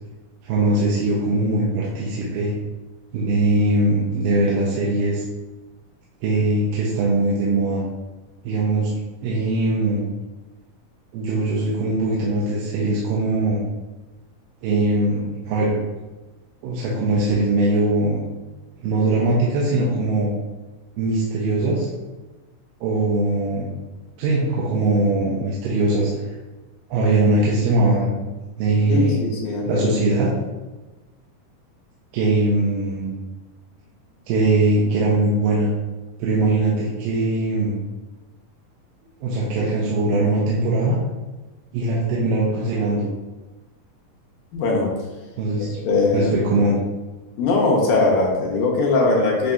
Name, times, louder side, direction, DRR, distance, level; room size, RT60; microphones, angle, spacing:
voice 1, 0.4-2.5 3.1-5.2 6.2-7.8 8.4-8.9 9.2-10.1 11.1-13.6 14.6-15.7 16.6-18.2 18.8-20.3 21.0-21.9 22.8-23.8 24.2-26.3 26.9-28.3 28.6-29.2 29.6-30.3 32.1-33.2 34.3-35.7 36.2-37.8 39.2-41.0 41.7-43.1 45.4-45.8 46.1-46.8, right 2 dB, 85° right, -5 dB, 2.4 m, -21 dB
voice 2, 28.9-29.9 44.5-44.9 45.9-46.3 47.4-49.5, left 3 dB, 75° left, -3 dB, 2.1 m, -20 dB
7.8 x 2.7 x 2.3 m, 1.1 s
omnidirectional pair, 3.9 m